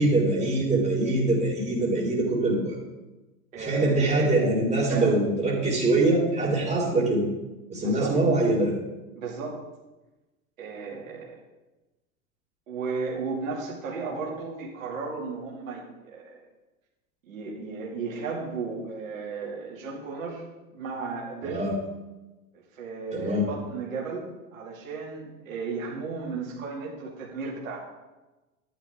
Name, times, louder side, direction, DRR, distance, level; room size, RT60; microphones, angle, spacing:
voice 1, 0.0-2.8 3.5-7.3 7.7-8.7 21.4-21.7 23.1-23.4, right 2 dB, 15° right, -3 dB, 4.3 m, -23 dB
voice 2, 3.5-4.3 4.9-5.2 7.8-8.2 9.1-9.6 10.6-11.4 12.7-16.4 17.3-20.4 20.7-21.7 22.5-24.2 24.5-27.9, right 4 dB, 75° right, -3 dB, 2.7 m, -34 dB
13.0 x 10.0 x 3.7 m, 1.1 s
figure-of-eight pair, 85°, 41 cm